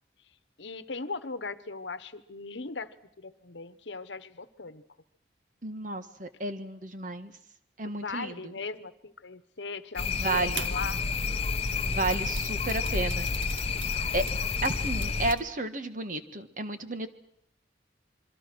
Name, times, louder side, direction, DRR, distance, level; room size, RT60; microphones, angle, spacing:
voice 1, 0.6-2.9 3.2-4.8 7.9-11.0, left 4 dB, 70° left, 14 dB, 1.2 m, -39 dB
voice 2, 5.6-7.3 7.8-8.5 10.2-10.7 11.8-13.6 14.1-14.3 14.6-17.1, right 2 dB, 40° right, 9 dB, 1.5 m, -32 dB
sound 1, 10.0-15.3, left 4 dB, 30° left, 0.9 m, -30 dB
sound 2, 10.5-15.4, right 6 dB, 90° right, 1.5 m, -45 dB
27.0 x 23.5 x 6.2 m, 0.72 s
head